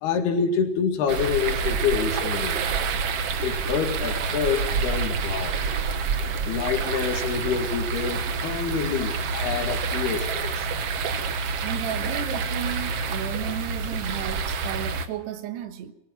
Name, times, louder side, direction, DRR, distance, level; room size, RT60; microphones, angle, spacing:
voice 1, 0.0-2.6 3.4-5.6 6.4-10.7, left 6 dB, 75° left, 4.0 m, -27 dB
sound 1, 1.1-15.1, right 5 dB, 65° right, 1.5 m, -28 dB
voice 2, 11.6-15.9, right 11 dB, 80° right, 3.5 m, -33 dB
23.0 x 20.0 x 5.9 m
omnidirectional pair, 4.7 m